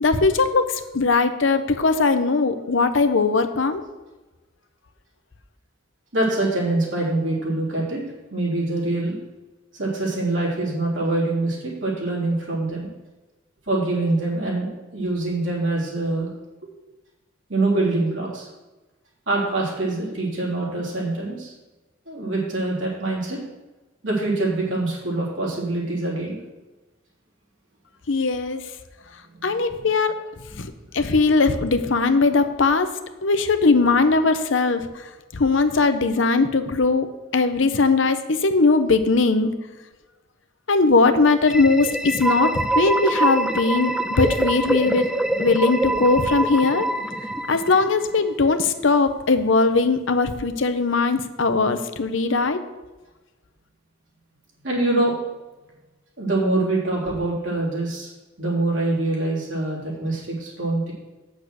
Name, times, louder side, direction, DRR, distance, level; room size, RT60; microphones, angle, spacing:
voice 1, 0.0-3.8 28.1-28.6 29.4-30.2 30.6-32.9 33.2-37.1 37.3-39.5 40.7-45.1 45.4-46.9 47.5-52.6, left 3 dB, 70° left, 9 dB, 0.8 m, -20 dB
voice 2, 6.1-8.0 8.3-9.2 9.7-12.9 13.7-16.3 17.5-18.5 19.3-21.5 22.1-23.4 24.0-26.4 54.6-55.1 56.2-58.1 58.4-60.9, right 2 dB, 65° right, -4 dB, 3.6 m, -24 dB
sound 1, 41.4-48.2, right 1 dB, 5° right, 0.3 m, -24 dB
8.5 x 6.4 x 6.5 m, 1.1 s
head